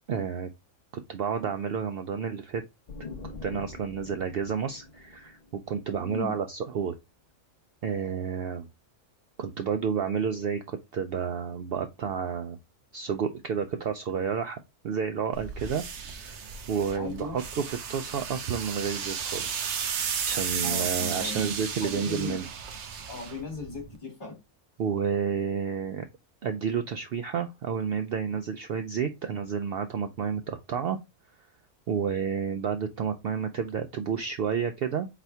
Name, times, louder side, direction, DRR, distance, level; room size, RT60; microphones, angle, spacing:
voice 1, 0.1-0.5 0.9-2.6 3.4-7.0 7.8-8.7 9.4-12.6 12.9-14.6 14.8-19.7 20.2-22.5 24.8-26.1 26.4-31.0 31.9-35.1, right 7 dB, 80° right, 0.5 m, -30 dB
sound 1, 2.9-6.5, left 3 dB, 60° left, 0.5 m, -44 dB
voice 2, 6.0-6.3 17.0-17.4 20.6-21.5 21.8-22.4 23.1-24.4, left 3 dB, 35° left, 2.5 m, -37 dB
sound 2, 15.3-24.0, right 7 dB, 60° right, 0.9 m, -34 dB
4.5 x 4.1 x 2.7 m
omnidirectional pair, 1.5 m